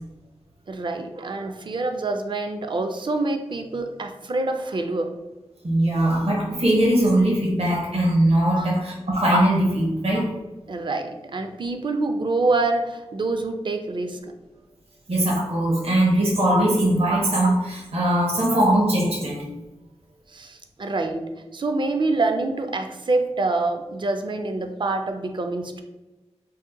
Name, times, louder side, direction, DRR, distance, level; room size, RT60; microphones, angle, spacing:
voice 1, 0.7-5.1 8.5-8.7 10.7-14.2 20.3-21.2 21.5-25.8, right 3 dB, 45° right, 6 dB, 0.4 m, -26 dB
voice 2, 5.6-10.3 15.1-19.5, right 1 dB, 65° right, -3 dB, 0.8 m, -20 dB
2.7 x 2.1 x 3.7 m, 1.1 s
wide cardioid pair, 60°, 11 cm